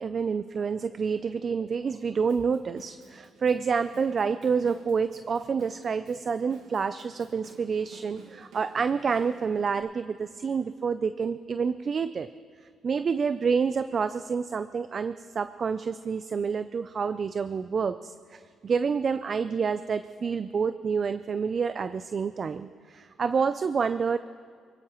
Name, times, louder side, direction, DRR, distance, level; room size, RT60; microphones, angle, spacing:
voice 1, 0.0-12.3 12.8-24.2, right 5 dB, 45° right, 12 dB, 0.4 m, -28 dB
Drum kit / Drum, 2.3-9.8, right 4 dB, 85° right, 1.9 m, -54 dB
25.5 x 16.5 x 3.1 m, 2.1 s
cardioid pair, 90°, 0 cm